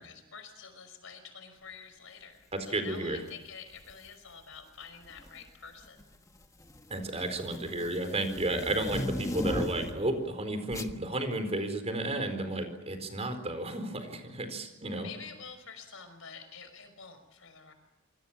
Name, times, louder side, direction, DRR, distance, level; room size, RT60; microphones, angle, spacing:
voice 1, 0.0-6.0 15.0-17.7, left 6 dB, 70° left, 9 dB, 5.5 m, -48 dB
voice 2, 2.5-3.2 6.9-15.1, right 1 dB, 30° right, 7 dB, 4.4 m, -32 dB
sound 1, 3.8-4.1 5.0-5.5 5.8-10.1 10.7-11.0, left 1 dB, 15° left, 1.4 m, -36 dB
28.0 x 24.5 x 7.4 m, 0.98 s
head